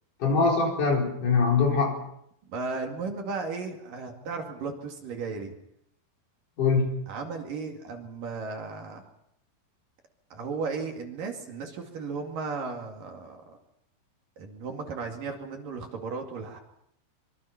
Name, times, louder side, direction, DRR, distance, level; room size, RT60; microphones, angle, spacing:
voice 1, 0.2-2.0 6.6-7.0, left 4 dB, 50° left, 0 dB, 5.4 m, -23 dB
voice 2, 2.5-5.5 7.1-9.0 10.3-13.6 14.4-16.6, right 4 dB, 60° right, 3 dB, 3.8 m, -35 dB
25.0 x 24.0 x 5.9 m, 0.74 s
omnidirectional pair, 4.8 m